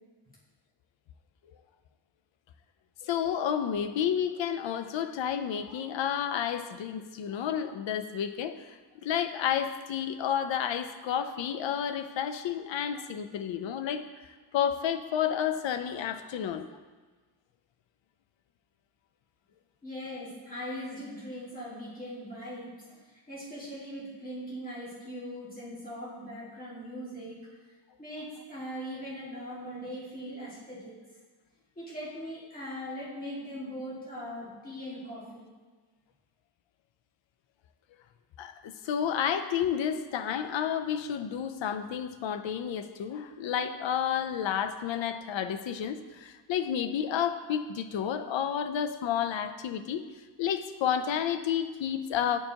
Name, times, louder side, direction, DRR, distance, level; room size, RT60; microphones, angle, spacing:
voice 1, 3.0-14.0 14.5-16.7 38.4-50.0 50.4-52.4, left 9 dB, 80° left, 9 dB, 0.6 m, -31 dB
voice 2, 19.8-27.5 28.0-31.0 31.8-35.5, equal, 20° left, -8 dB, 2.0 m, -40 dB
9.5 x 4.7 x 2.8 m, 1.4 s
wide cardioid pair, 145°, 44 cm